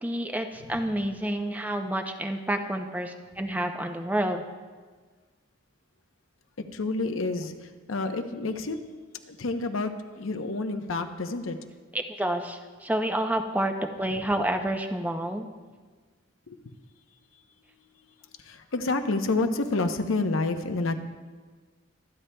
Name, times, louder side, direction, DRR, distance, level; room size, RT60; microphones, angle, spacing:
voice 1, 0.0-4.4 11.9-15.5, right 1 dB, 10° right, 5 dB, 0.5 m, -29 dB
voice 2, 6.6-8.8 9.3-11.6 16.5-16.7 18.4-21.0, left 3 dB, 80° left, 7 dB, 0.8 m, -29 dB
24.0 x 9.7 x 2.2 m, 1.4 s
head